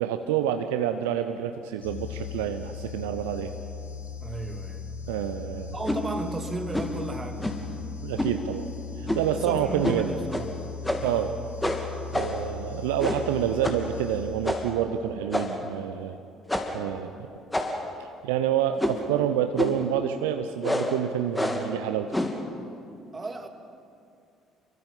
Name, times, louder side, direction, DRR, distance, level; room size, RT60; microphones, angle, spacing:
voice 1, 0.0-3.5 5.1-5.7 8.0-8.7 9.0-10.1 11.0-11.3 12.1-16.2 16.7-17.3 18.0-22.3, right 10 dB, 65° right, 8 dB, 0.8 m, -28 dB
sound 1, 1.8-14.9, left 6 dB, 80° left, 2.1 m, -38 dB
voice 2, 4.2-5.1 5.7-7.5 9.3-10.7 11.0-11.4 23.1-23.5, right 3 dB, 25° right, 6 dB, 2.4 m, -35 dB
sound 2, 5.8-6.0 6.7-7.0 7.4-7.7 8.2-8.4 9.1-9.4 9.8-10.0 10.3-10.5 10.8-11.2 11.6-12.5 13.0-13.3 13.6-13.9 14.4-14.8 15.3-15.7 16.5-16.8 17.5-18.0 18.8-19.1 19.6-19.9 20.6-21.0 21.3-21.7 22.1-22.4, left 1 dB, 10° left, 2.8 m, -28 dB
29.0 x 23.5 x 5.6 m, 2.5 s
figure-of-eight pair, 50°, 0 cm